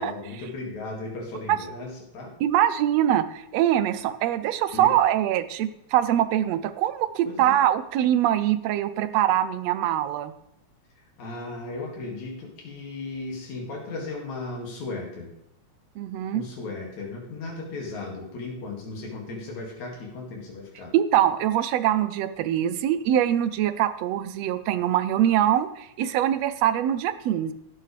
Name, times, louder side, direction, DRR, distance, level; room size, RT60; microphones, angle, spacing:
voice 1, 0.0-2.3 4.7-4.9 7.2-7.5 11.2-15.3 16.3-20.9, left 3 dB, 75° left, -1 dB, 3.4 m, -36 dB
voice 2, 2.4-10.3 16.0-16.4 20.9-27.5, right 11 dB, 75° right, 12 dB, 1.6 m, -23 dB
17.0 x 7.7 x 3.3 m, 0.79 s
omnidirectional pair, 3.3 m